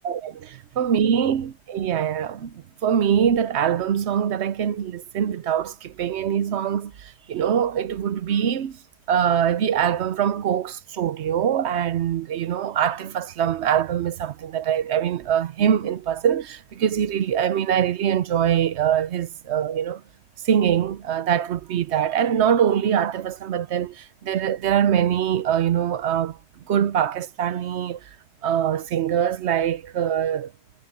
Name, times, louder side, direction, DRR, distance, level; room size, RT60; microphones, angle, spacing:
voice 1, 0.0-0.4 0.8-8.8 9.1-20.0 20.4-26.4 26.7-28.0 28.4-30.5, right 9 dB, 60° right, 0.7 m, -23 dB
omnidirectional pair, 1.7 m